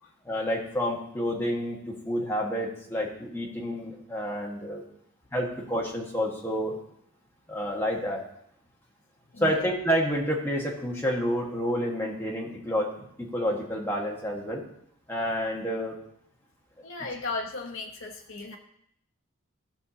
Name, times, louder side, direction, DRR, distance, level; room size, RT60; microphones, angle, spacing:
voice 1, 0.2-4.8 5.3-6.8 7.5-8.2 9.4-12.9 13.2-14.6 15.1-16.0, equal, 10° left, -2 dB, 1.5 m, -29 dB
voice 2, 9.3-9.7 16.8-18.6, left 3 dB, 60° left, 1 dB, 1.0 m, -36 dB
15.0 x 5.9 x 2.8 m, 0.72 s
head